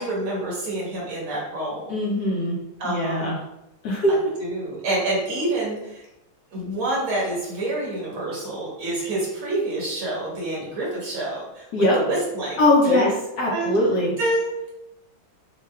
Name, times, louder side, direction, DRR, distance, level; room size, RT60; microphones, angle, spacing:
voice 1, 0.0-2.0 2.8-3.3 4.1-6.0 6.5-11.7 11.9-13.1 13.5-13.7 14.2-14.7, right 2 dB, 85° right, -5 dB, 2.3 m, -27 dB
voice 2, 1.9-2.6 2.8-3.4 3.8-4.2 11.7-12.0 12.6-13.1 13.4-14.1, left 1 dB, 65° left, -4 dB, 1.0 m, -20 dB
6.2 x 2.3 x 2.3 m, 0.91 s
omnidirectional pair, 2.3 m